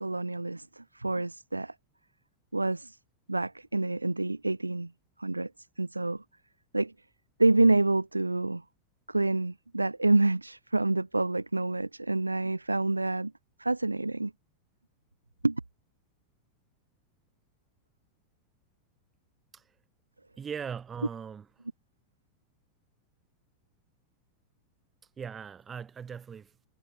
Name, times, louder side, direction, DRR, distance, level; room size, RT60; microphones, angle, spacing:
voice 1, 0.0-1.7 2.5-3.0 3.3-4.9 5.2-5.5 5.8-6.2 6.7-6.9 7.4-8.6 9.1-13.3 13.6-14.3 15.4-15.6, right 2 dB, 85° right, 0.7 m, -27 dB
voice 2, 20.4-21.5 25.2-26.6, right 7 dB, 20° right, 1.1 m, -39 dB
figure-of-eight pair, 90°, 0 cm